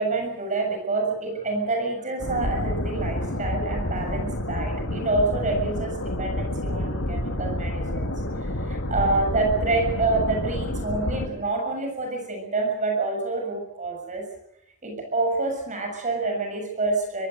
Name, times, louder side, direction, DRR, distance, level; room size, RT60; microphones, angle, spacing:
voice 1, 0.0-14.3 14.8-17.3, right 3 dB, 35° right, 2 dB, 6.8 m, -27 dB
sound 1, 2.2-11.3, left 1 dB, 70° left, 2.4 m, -29 dB
25.5 x 18.5 x 7.8 m, 0.78 s
head